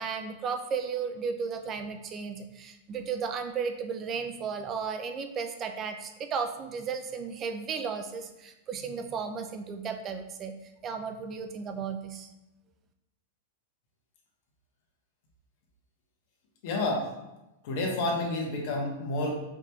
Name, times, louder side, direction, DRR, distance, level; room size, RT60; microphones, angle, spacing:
voice 1, 0.0-10.5 10.8-12.3, right 6 dB, 30° right, 6 dB, 0.3 m, -34 dB
voice 2, 16.6-17.0 17.6-19.4, left 2 dB, 55° left, -1 dB, 1.0 m, -29 dB
4.8 x 2.9 x 2.3 m, 0.94 s
hypercardioid pair, 130°, 0 cm